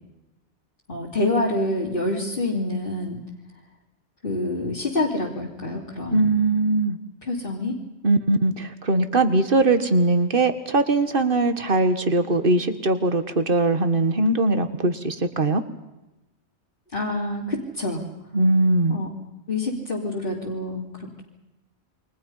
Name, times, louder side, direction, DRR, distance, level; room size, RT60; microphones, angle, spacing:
voice 1, 0.9-3.2 4.2-6.4 7.2-7.8 16.9-18.0 18.9-19.1 19.5-21.2, left 2 dB, 50° left, -4 dB, 3.1 m, -27 dB
voice 2, 6.1-7.0 8.0-15.6 18.3-19.0, right 2 dB, 55° right, 10 dB, 1.8 m, -21 dB
28.5 x 24.0 x 5.6 m, 0.98 s
omnidirectional pair, 1.1 m